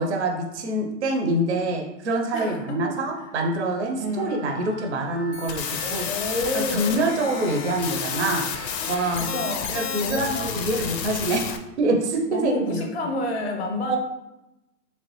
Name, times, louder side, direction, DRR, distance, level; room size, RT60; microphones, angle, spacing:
voice 1, 0.0-6.1 6.5-9.4 9.7-11.4 11.8-12.9 13.9-14.0, right 2 dB, 45° right, 3 dB, 0.5 m, -25 dB
voice 2, 2.3-3.0 4.0-4.6 5.8-7.2 8.8-9.0 9.3-10.8 12.3-14.0, left 1 dB, 45° left, 2 dB, 0.6 m, -30 dB
Wind instrument woodwind instrument, 4.1-9.3, left 2 dB, ahead, 0.6 m, -42 dB
sound 1, 5.3-11.6, left 7 dB, 85° left, 0.6 m, -31 dB
3.1 x 3.1 x 3.0 m, 0.94 s
hypercardioid pair, 165°, 49 cm